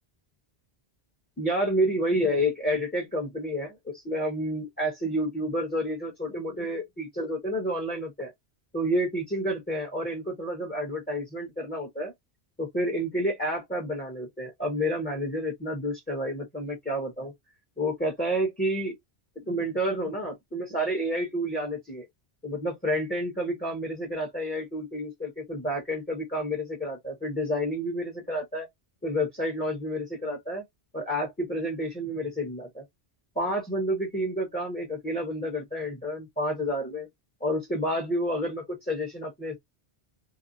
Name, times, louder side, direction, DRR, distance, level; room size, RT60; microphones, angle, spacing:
voice 1, 1.4-8.3 8.7-12.1 12.6-17.3 17.8-18.9 19.5-22.1 22.4-28.7 29.0-30.6 30.9-32.8 33.4-37.1 37.4-39.6, equal, 10° left, 0.8 m, -29 dB
2.9 x 2.0 x 2.5 m
omnidirectional pair, 1.1 m